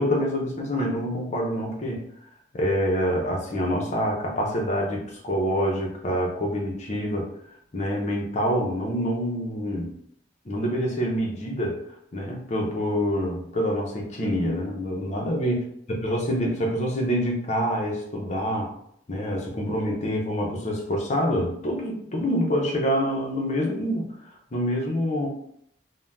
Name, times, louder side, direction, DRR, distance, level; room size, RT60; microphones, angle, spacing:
voice 1, 0.0-2.0 2.5-7.3 7.7-9.9 10.4-11.8 12.1-15.6 16.0-18.7 19.1-24.1 24.5-25.3, equal, 40° left, 0 dB, 0.6 m, -26 dB
2.6 x 2.1 x 3.4 m, 0.70 s
head